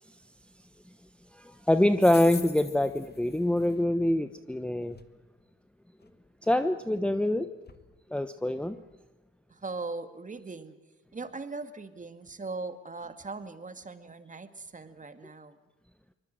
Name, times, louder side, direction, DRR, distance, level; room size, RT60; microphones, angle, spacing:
voice 1, 1.3-5.0 6.4-7.5 8.1-8.8, left 1 dB, 5° left, 9 dB, 1.0 m, -25 dB
sound 1, 2.0-3.8 4.8-5.1 6.0-6.1 6.4-6.5 7.0-7.1 7.7-7.8, left 5 dB, 30° left, 1.8 m, -44 dB
voice 2, 9.5-10.8 11.1-15.6, right 3 dB, 25° right, 10 dB, 2.2 m, -39 dB
24.5 x 20.5 x 7.7 m, 1.1 s
supercardioid pair, 65°, 30 cm